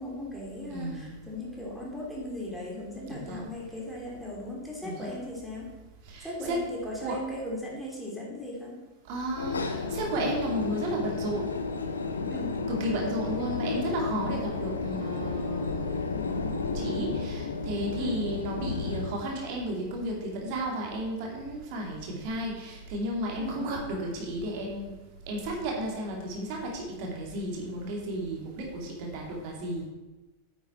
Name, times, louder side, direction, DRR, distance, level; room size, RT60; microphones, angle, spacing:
voice 1, 0.0-5.7 6.2-8.8 12.3-12.6 18.0-18.2 23.4-23.7, left 1 dB, ahead, -5 dB, 3.3 m, -37 dB
voice 2, 0.7-1.2 3.1-3.5 4.8-5.1 6.0-6.6 7.0-7.2 9.1-11.5 12.7-24.9 25.3-29.8, right 1 dB, 45° right, -1 dB, 2.6 m, -33 dB
sound 1, 9.4-19.2, left 4 dB, 75° left, 0.8 m, -32 dB
9.4 x 8.1 x 4.4 m, 1.1 s
figure-of-eight pair, 90°, 0 cm